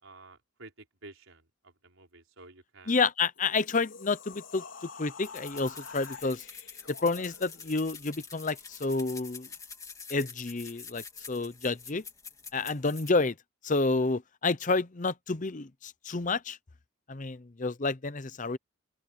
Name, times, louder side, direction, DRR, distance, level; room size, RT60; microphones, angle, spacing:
voice 1, 0.0-3.0, right 2 dB, 75° right, 4.5 m, -52 dB
voice 2, 2.9-4.6 5.0-6.4 6.9-9.5 10.1-12.0 12.5-13.3 13.6-16.6 17.1-18.6, left 3 dB, 40° left, 0.7 m, -29 dB
sound 1, 3.2-7.8, left 5 dB, 70° left, 4.2 m, -47 dB
sound 2, 5.2-13.1, left 5 dB, 15° left, 2.6 m, -47 dB
open air
head